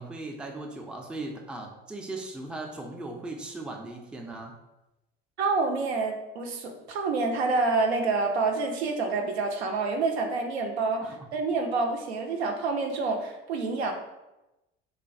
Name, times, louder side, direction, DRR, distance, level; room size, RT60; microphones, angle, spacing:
voice 1, 0.0-4.5 11.0-11.3, right 2 dB, 5° right, 2 dB, 0.3 m, -38 dB
voice 2, 5.4-11.0 11.3-13.9, right 3 dB, 85° right, 3 dB, 0.5 m, -27 dB
3.2 x 2.2 x 2.5 m, 0.97 s
hypercardioid pair, 65°, 31 cm